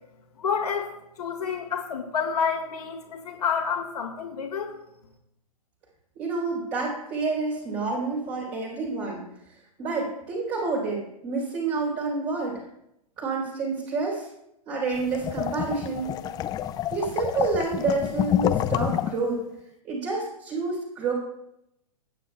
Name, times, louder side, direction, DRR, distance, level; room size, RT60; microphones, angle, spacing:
voice 1, 0.4-4.8, left 6 dB, 75° left, 3 dB, 2.0 m, -29 dB
voice 2, 6.2-9.3 9.8-12.6 13.2-14.3 14.7-16.1 16.9-19.4 19.9-21.1, right 3 dB, 35° right, -4 dB, 4.1 m, -28 dB
sound 1, 15.0-19.3, left 10 dB, 20° left, 0.5 m, -28 dB
20.5 x 8.9 x 2.4 m, 0.82 s
hypercardioid pair, 115°, 20 cm